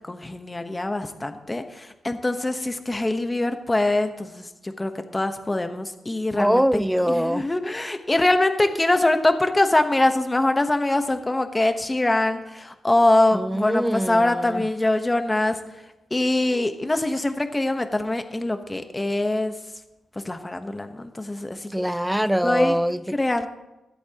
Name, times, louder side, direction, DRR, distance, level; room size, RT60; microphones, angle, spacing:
voice 1, 0.1-6.6 7.1-15.6 16.1-19.5 20.2-21.7 22.4-22.8 23.1-23.5, left 2 dB, 15° left, 1.1 m, -23 dB
voice 2, 6.3-7.5 13.3-14.6 21.7-23.2, equal, 5° right, 0.4 m, -23 dB
24.5 x 8.5 x 3.0 m
cardioid pair, 105°, 0 cm